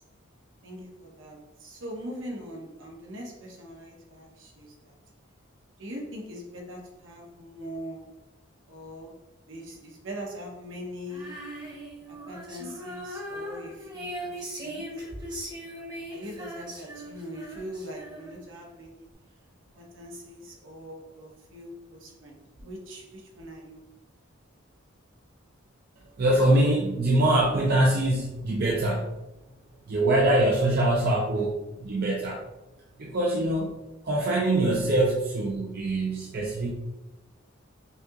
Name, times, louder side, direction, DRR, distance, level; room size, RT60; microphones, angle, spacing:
voice 1, 0.6-4.9 5.8-8.2 8.7-9.2 9.5-11.4 12.1-14.9 16.1-19.1 19.7-23.9 31.4-31.5, equal, 70° right, 0 dB, 1.0 m, -41 dB
Female singing, 11.1-18.6, equal, 20° right, 0.9 m, -39 dB
voice 2, 26.2-29.1 29.9-32.4 33.0-33.7 34.0-36.7, right 1 dB, 50° right, -3 dB, 0.6 m, -24 dB
5.4 x 2.9 x 2.4 m, 0.98 s
head